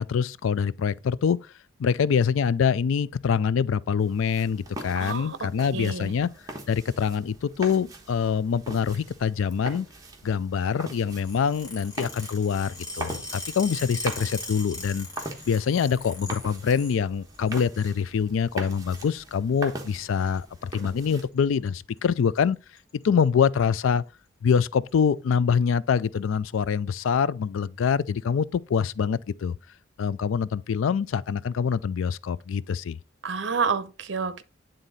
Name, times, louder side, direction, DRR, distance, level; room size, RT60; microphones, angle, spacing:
voice 1, 0.0-1.4 1.8-6.3 6.7-9.9 10.2-15.1 15.5-22.6 23.0-24.0 24.4-29.6 30.0-33.0, left 6 dB, 80° left, 0.4 m, -25 dB
sound 1, 4.0-21.3, right 2 dB, 20° right, 1.2 m, -41 dB
voice 2, 5.0-6.1 33.2-34.4, right 5 dB, 60° right, 0.7 m, -29 dB
sound 2, 11.1-17.0 17.3-17.9 18.6-19.1 20.2-20.4 21.4-21.7 22.0-22.1 22.4-22.5 22.8-23.2 23.9-24.0 24.9-25.0, left 2 dB, 20° left, 2.0 m, -40 dB
9.1 x 3.8 x 4.0 m
head